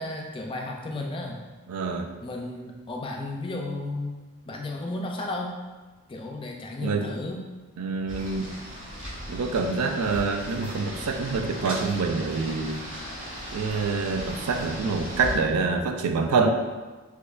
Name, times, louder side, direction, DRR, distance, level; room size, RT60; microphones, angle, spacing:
voice 1, 0.0-1.4 2.2-4.2 4.5-5.6 6.1-7.4, left 2 dB, 25° left, 0 dB, 0.3 m, -33 dB
voice 2, 1.7-2.1 6.8-7.1 7.8-8.5 9.3-12.9 13.5-16.5, right 4 dB, 85° right, 5 dB, 0.4 m, -26 dB
sound 1, 8.1-15.4, equal, 55° right, 0.9 m, -37 dB
4.2 x 2.9 x 2.4 m, 1.3 s
head